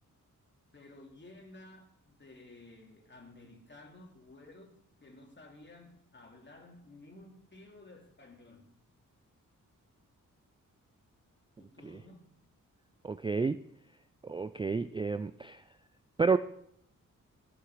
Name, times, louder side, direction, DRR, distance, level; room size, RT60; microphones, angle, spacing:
voice 1, 0.7-8.7 11.6-12.2, left 2 dB, 35° left, 2 dB, 2.9 m, -54 dB
voice 2, 13.0-13.6 14.2-15.6 16.2-16.4, right 4 dB, 15° right, 13 dB, 0.3 m, -30 dB
17.0 x 6.9 x 4.9 m, 0.72 s
cardioid pair, 85°, 33 cm